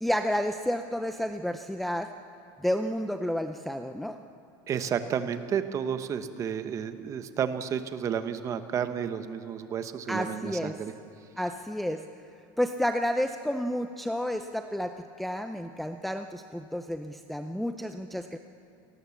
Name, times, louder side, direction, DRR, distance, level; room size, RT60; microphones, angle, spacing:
voice 1, 0.0-2.1 2.6-4.2 10.1-10.7 11.4-12.0 12.6-18.4, equal, ahead, 6 dB, 0.5 m, -30 dB
voice 2, 4.7-10.9, right 8 dB, 30° right, 10 dB, 1.1 m, -31 dB
28.0 x 19.0 x 7.2 m, 2.5 s
cardioid pair, 165°, 11 cm